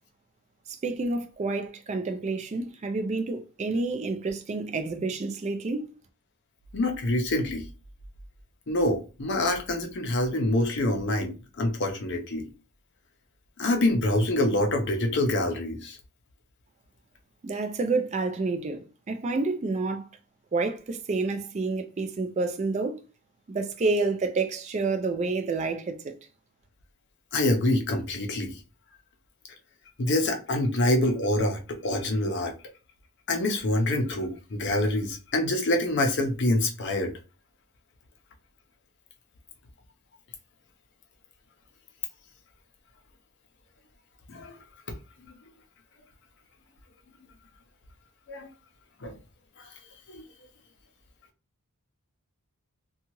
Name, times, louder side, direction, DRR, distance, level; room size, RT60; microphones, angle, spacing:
voice 1, 0.7-5.9 17.4-20.1 20.5-23.0 23.5-26.1, right 3 dB, 30° right, 0.3 m, -29 dB
voice 2, 6.7-7.6 8.7-12.4 13.6-16.0 27.3-28.5 30.0-32.5 33.3-37.1 44.3-44.6 48.3-48.5 49.0-49.1 50.1-50.2, left 1 dB, 55° left, 0.6 m, -26 dB
2.7 x 2.3 x 2.9 m
head